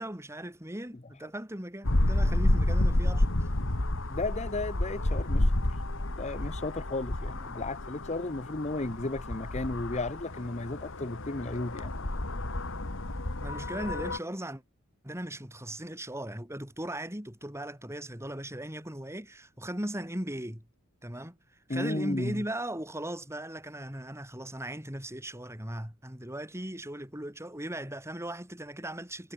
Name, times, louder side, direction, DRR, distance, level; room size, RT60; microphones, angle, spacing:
voice 1, 0.0-3.3 13.4-14.6 15.0-20.6 21.0-21.4 21.7-29.3, right 1 dB, 10° right, 7.0 m, -38 dB
sound 1, 1.8-14.2, left 1 dB, 60° left, 2.2 m, -30 dB
voice 2, 4.1-5.8 6.1-11.9 21.7-22.4, left 2 dB, 30° left, 1.2 m, -34 dB
head